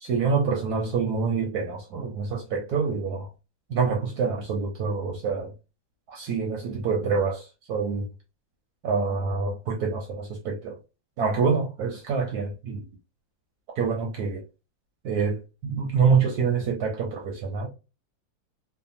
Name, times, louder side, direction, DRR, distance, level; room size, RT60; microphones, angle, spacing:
voice 1, 0.0-3.3 3.7-5.5 6.1-8.1 8.8-10.8 11.2-12.9 13.8-14.4 15.0-17.7, right 5 dB, 70° right, 1.0 m, -26 dB
3.3 x 2.1 x 2.6 m
omnidirectional pair, 2.1 m